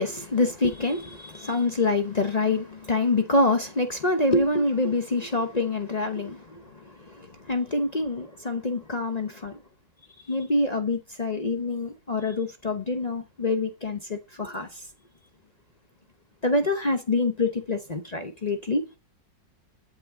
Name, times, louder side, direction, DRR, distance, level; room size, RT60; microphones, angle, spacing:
voice 1, 0.0-9.6 10.3-14.8 16.4-19.0, left 2 dB, 35° left, 0.6 m, -26 dB
13.0 x 6.2 x 3.7 m
omnidirectional pair, 1.9 m